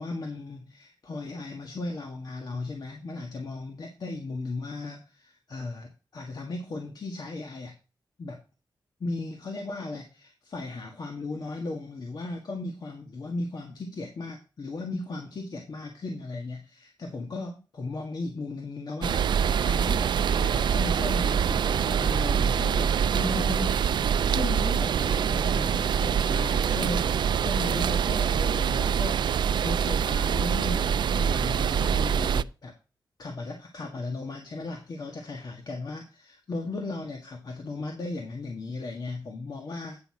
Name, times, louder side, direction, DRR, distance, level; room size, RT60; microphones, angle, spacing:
voice 1, 0.0-7.8 8.2-8.4 9.0-32.7 33.2-40.0, left 3 dB, 60° left, 2 dB, 1.7 m, -36 dB
sound 1, 19.0-32.4, right 8 dB, 75° right, 0.3 m, -25 dB
9.6 x 6.2 x 4.8 m, 0.33 s
wide cardioid pair, 95°, 8 cm